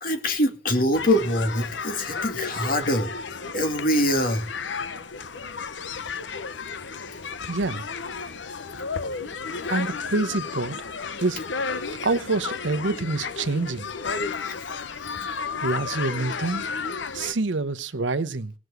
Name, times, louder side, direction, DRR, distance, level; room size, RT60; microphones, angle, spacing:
voice 1, 0.0-3.1 3.5-4.5 14.4-14.5, left 1 dB, 50° left, 2.3 m, -24 dB
sound 1, 0.9-17.3, left 5 dB, 80° left, 0.9 m, -33 dB
voice 2, 7.5-7.8 9.7-10.8 11.2-11.4 12.0-13.9 15.6-16.6 17.1-18.5, right 3 dB, 80° right, 0.9 m, -26 dB
18.0 x 6.3 x 8.0 m
head